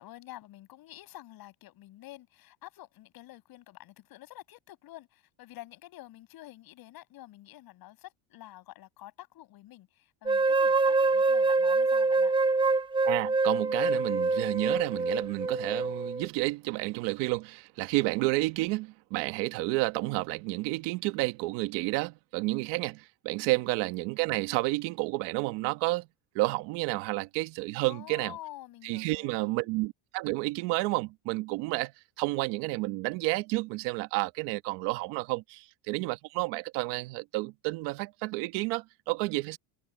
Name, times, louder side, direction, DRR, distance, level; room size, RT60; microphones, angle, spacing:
voice 1, 0.0-12.3 23.5-23.7 27.9-29.7, left 15 dB, 55° left, 7.2 m, -49 dB
sound 1, 10.3-16.3, right 3 dB, 10° right, 0.7 m, -25 dB
voice 2, 13.0-26.1 26.3-28.3 28.8-31.9 32.2-39.6, right 22 dB, 80° right, 1.4 m, -30 dB
cardioid pair, 140°, 42 cm